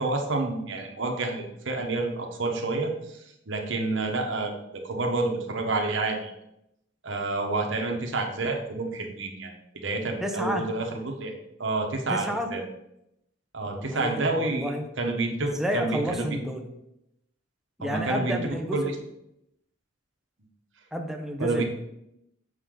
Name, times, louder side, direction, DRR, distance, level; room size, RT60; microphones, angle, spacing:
voice 1, 0.0-4.5 4.8-6.3 7.0-11.3 11.6-12.6 13.5-14.7 15.0-16.4 17.8-18.4 18.7-18.9 21.4-21.7, right 2 dB, 70° right, 2 dB, 1.3 m, -29 dB
voice 2, 10.2-10.6 12.1-12.5 13.6-14.9 15.4-16.7 17.8-18.9 20.9-21.7, equal, ahead, 3 dB, 0.8 m, -31 dB
6.8 x 6.7 x 3.9 m, 0.82 s
head